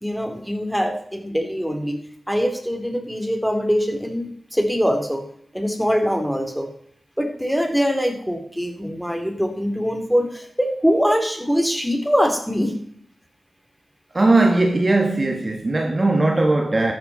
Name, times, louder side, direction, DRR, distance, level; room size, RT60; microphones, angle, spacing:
voice 1, 0.0-2.0 2.3-5.2 5.5-6.7 7.2-12.7, equal, ahead, 3.1 m, -23 dB
voice 2, 14.1-16.9, right 2 dB, 30° right, 1.7 m, -18 dB
14.0 x 11.5 x 4.2 m
wide cardioid pair, 90°, 0 cm